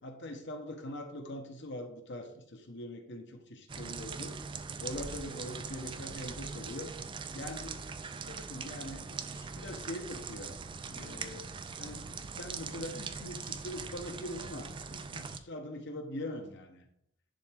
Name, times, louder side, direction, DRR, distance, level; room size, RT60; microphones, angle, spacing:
voice 1, 0.0-4.4 4.8-6.9 7.3-10.5 10.9-11.4 11.8-16.8, left 1 dB, 60° left, 5 dB, 1.0 m, -43 dB
sound 1, 3.7-15.4, right 5 dB, 25° right, 0.3 m, -41 dB
10.5 x 3.5 x 3.4 m, 0.73 s
head